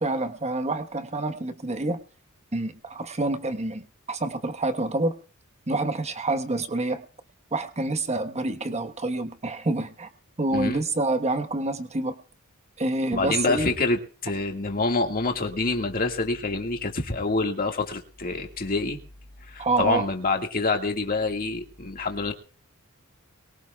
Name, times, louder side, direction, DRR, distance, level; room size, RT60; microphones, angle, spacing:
voice 1, 0.0-2.0 2.5-5.2 5.7-7.0 7.5-10.1 10.4-12.2 12.8-13.7 19.6-20.0, right 2 dB, 30° right, 9 dB, 1.2 m, -27 dB
voice 2, 10.5-10.8 13.1-19.0 19.5-22.3, left 3 dB, 40° left, 3 dB, 1.9 m, -26 dB
23.0 x 17.5 x 2.3 m, 0.40 s
head